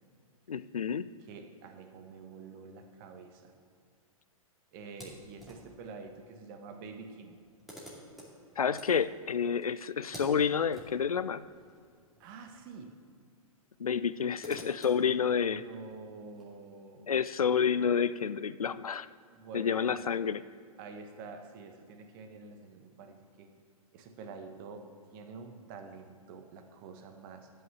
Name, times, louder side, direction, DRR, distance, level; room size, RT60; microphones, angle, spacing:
voice 1, 0.5-1.1 8.6-11.4 13.8-15.6 17.1-19.1 19.5-20.4, left 7 dB, 75° left, 15 dB, 0.4 m, -29 dB
voice 2, 1.3-3.5 4.7-7.4 12.2-13.0 15.0-17.1 19.3-20.1 20.8-23.5 23.9-27.5, right 4 dB, 35° right, 6 dB, 1.2 m, -47 dB
sound 1, 4.9-5.9 6.9-7.0 7.2-12.8 13.0-13.1 13.9-16.4, equal, ahead, 2.4 m, -52 dB
12.5 x 5.7 x 7.0 m, 2.2 s
figure-of-eight pair, 105°, 19 cm